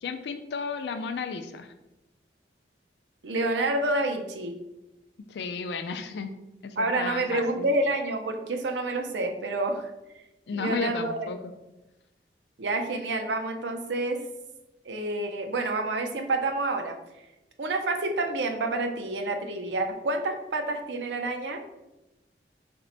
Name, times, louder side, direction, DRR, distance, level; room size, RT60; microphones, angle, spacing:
voice 1, 0.0-1.7 5.3-6.4 6.6-7.7 10.5-11.4, left 5 dB, 70° left, 8 dB, 0.4 m, -33 dB
voice 2, 3.2-4.5 6.8-9.9 10.5-11.3 12.6-14.2 14.9-17.0 17.6-21.6, right 2 dB, 75° right, 5 dB, 0.5 m, -28 dB
4.3 x 2.1 x 3.9 m, 0.98 s
head